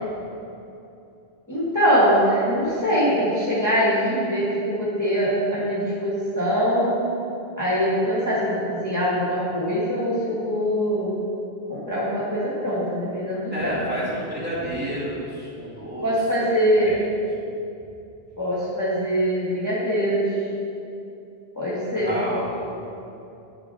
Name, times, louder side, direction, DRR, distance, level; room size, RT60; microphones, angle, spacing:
voice 1, 1.5-7.0 7.6-11.2 11.7-13.8 16.0-16.9 18.4-20.3 21.5-22.4, equal, 15° left, -10 dB, 1.5 m, -23 dB
voice 2, 13.5-16.1 16.6-17.0 17.4-17.5 21.9-22.6, equal, 10° right, -7 dB, 2.0 m, -30 dB
10.0 x 6.2 x 3.3 m, 2.7 s
omnidirectional pair, 1.1 m